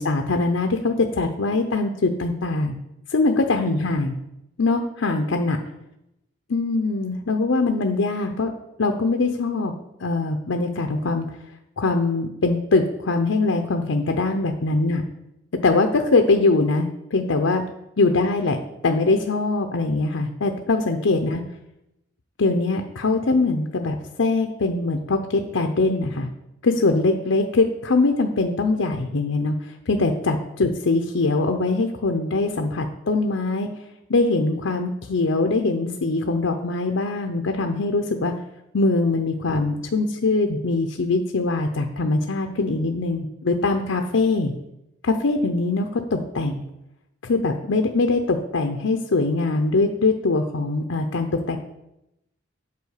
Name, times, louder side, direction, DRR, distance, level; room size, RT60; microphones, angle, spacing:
voice 1, 0.0-2.7 3.1-4.1 4.6-5.6 6.5-8.5 8.8-9.7 10.0-11.2 11.8-15.0 15.6-17.6 18.0-18.6 18.8-21.4 22.4-26.3 26.6-33.7 34.1-38.3 38.7-44.5 45.0-46.6 47.2-51.6, left 3 dB, 75° left, 4 dB, 0.7 m, -22 dB
8.4 x 4.4 x 6.5 m, 0.87 s
head